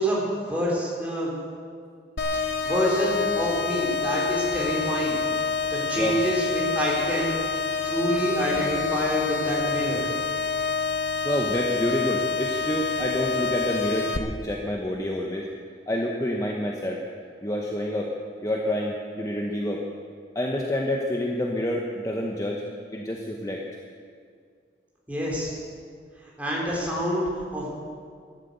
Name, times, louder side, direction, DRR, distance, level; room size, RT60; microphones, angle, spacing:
voice 1, 0.0-1.4 2.3-5.2 5.7-7.3 7.8-10.0 25.1-25.5 26.4-27.7, equal, 10° right, -4 dB, 3.8 m, -27 dB
sound 1, 2.2-14.2, left 4 dB, 75° left, 1.1 m, -27 dB
voice 2, 11.2-15.5 15.9-17.0 17.4-18.1 18.4-19.8 20.3-22.6 22.9-23.6, left 1 dB, 20° left, -1 dB, 1.0 m, -28 dB
12.5 x 12.0 x 8.1 m, 2.1 s
head